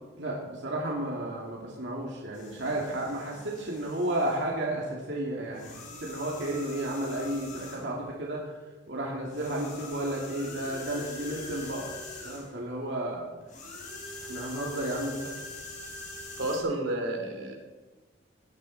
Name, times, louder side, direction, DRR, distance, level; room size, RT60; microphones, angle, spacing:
voice 1, 0.2-8.5 8.9-11.9 12.2-13.3 14.2-15.3, right 1 dB, 65° right, -3 dB, 2.5 m, -32 dB
sound 1, 2.3-4.5 5.5-8.0 9.3-12.6 13.5-16.6, left 2 dB, 40° left, 3.8 m, -43 dB
voice 2, 16.4-17.6, right 1 dB, 85° right, 2 dB, 2.9 m, -30 dB
18.5 x 11.0 x 4.2 m, 1.2 s
head